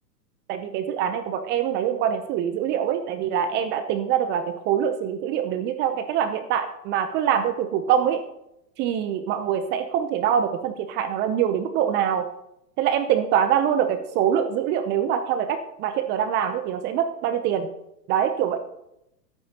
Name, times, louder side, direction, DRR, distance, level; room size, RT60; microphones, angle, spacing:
voice 1, 0.5-8.2 8.8-12.2 12.8-17.7 18.1-18.6, right 9 dB, 25° right, 9 dB, 0.5 m, -24 dB
24.0 x 8.9 x 2.8 m, 0.85 s
hypercardioid pair, 115°, 49 cm